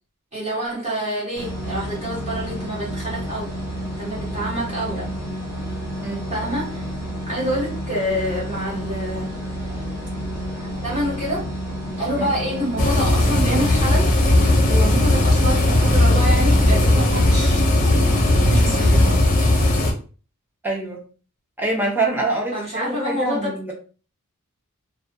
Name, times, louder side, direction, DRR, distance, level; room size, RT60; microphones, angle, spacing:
voice 1, 0.3-3.6 4.0-5.1 6.3-6.9 7.3-9.3 10.6-11.5 12.0-14.1 14.7-17.9 18.5-19.2 22.5-23.5, equal, 30° right, 1.0 m, -27 dB
sound 1, 1.3-19.2, equal, 50° right, 1.2 m, -30 dB
sound 2, 12.8-19.9, left 1 dB, 35° left, 0.5 m, -17 dB
voice 2, 20.6-21.1 21.6-23.7, right 2 dB, 10° right, 0.6 m, -25 dB
2.3 x 2.2 x 2.6 m
head